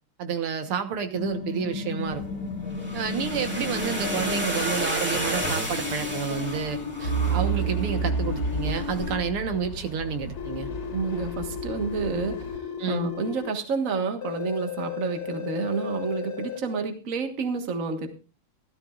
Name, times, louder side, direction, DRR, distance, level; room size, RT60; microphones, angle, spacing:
voice 1, 0.2-2.2 2.9-10.7 12.8-13.1, right 7 dB, 80° right, 7 dB, 2.1 m, -30 dB
sound 1, 1.1-4.6 5.7-9.2 10.4-13.5 14.2-16.6, left 6 dB, 80° left, 2.6 m, -35 dB
sound 2, 2.1-9.1, equal, 5° right, 2.8 m, -32 dB
Truck / Idling, 7.0-12.6, right 4 dB, 55° left, 2.3 m, -31 dB
voice 2, 10.9-12.5 12.9-18.1, right 4 dB, 40° right, 6 dB, 1.8 m, -29 dB
16.5 x 13.0 x 2.4 m, 0.34 s
omnidirectional pair, 2.4 m